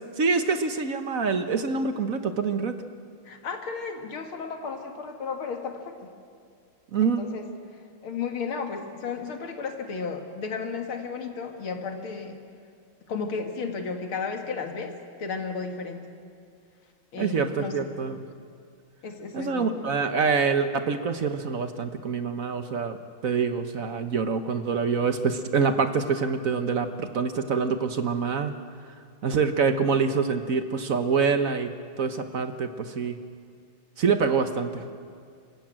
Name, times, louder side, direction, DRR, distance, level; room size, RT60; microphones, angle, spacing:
voice 1, 0.2-2.7 6.9-7.2 17.2-18.2 19.3-23.0 23.2-28.5 29.2-31.7 32.0-33.2 34.0-34.8, right 5 dB, 50° right, 8 dB, 1.2 m, -25 dB
voice 2, 3.2-5.9 7.0-7.4 8.0-12.4 13.1-14.9 15.2-16.0 17.1-18.0 19.0-19.7, left 5 dB, 90° left, 4 dB, 2.8 m, -33 dB
27.0 x 15.0 x 8.9 m, 2.2 s
omnidirectional pair, 2.2 m